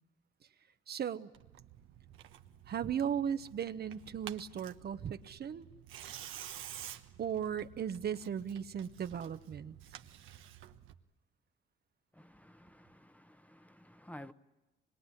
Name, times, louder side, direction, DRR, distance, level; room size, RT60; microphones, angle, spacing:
voice 1, 0.9-1.3 2.7-5.6 7.2-9.8, right 8 dB, 55° right, 1.0 m, -37 dB
Tearing, 1.3-10.9, right 11 dB, 85° right, 1.2 m, -51 dB
voice 2, 12.2-14.3, left 1 dB, 5° left, 1.0 m, -53 dB
25.0 x 22.0 x 9.8 m
cardioid pair, 90°, 20 cm